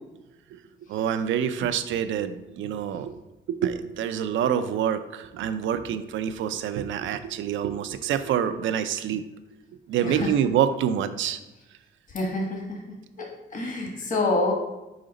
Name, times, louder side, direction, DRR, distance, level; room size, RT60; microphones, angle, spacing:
voice 1, 0.9-3.1 3.5-9.2 9.9-11.4, right 9 dB, 75° right, 10 dB, 0.5 m, -26 dB
voice 2, 10.0-10.3 12.1-12.8 13.2-14.5, left 2 dB, 40° left, 0 dB, 1.3 m, -27 dB
5.1 x 4.9 x 3.9 m, 1.0 s
cardioid pair, 90°, 20 cm